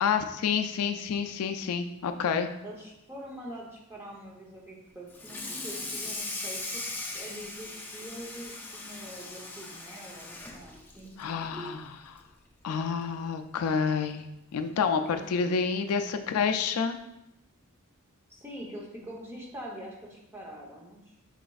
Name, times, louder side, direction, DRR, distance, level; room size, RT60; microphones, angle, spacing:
voice 1, 0.0-2.5 11.2-12.2 12.6-14.2 14.5-17.0, left 6 dB, 90° left, 7 dB, 0.4 m, -29 dB
voice 2, 2.6-6.8 7.1-11.2 15.1-15.4 18.3-21.1, equal, 10° right, -3 dB, 0.7 m, -44 dB
Water tap faucet / Sink (filling or washing), 5.1-11.8 12.2-12.4 12.8-12.9 13.3-13.4 14.5-14.6 15.0-15.3, left 2 dB, 10° left, 0.4 m, -39 dB
4.9 x 4.1 x 2.3 m, 0.86 s
head